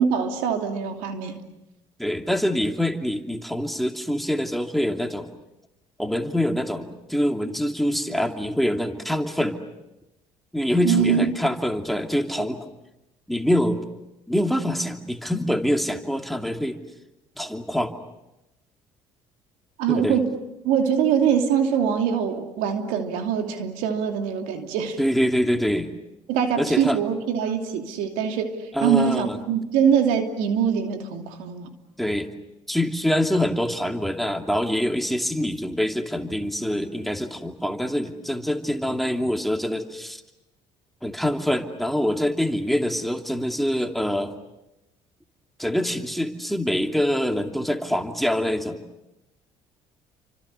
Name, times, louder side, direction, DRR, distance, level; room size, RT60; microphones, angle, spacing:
voice 1, 0.0-1.4 10.8-11.3 19.8-20.3 20.6-25.0 26.3-31.7, right 7 dB, 80° right, 5 dB, 2.8 m, -23 dB
voice 2, 2.0-5.3 6.0-9.6 10.5-12.6 13.3-13.8 14.3-16.8 17.4-17.9 19.9-20.2 25.0-26.0 26.6-27.0 28.7-29.4 32.0-32.3 32.7-40.2 41.0-44.3 45.6-48.8, equal, ahead, 4 dB, 2.7 m, -25 dB
30.0 x 25.5 x 6.8 m, 0.94 s
hypercardioid pair, 65°, 14 cm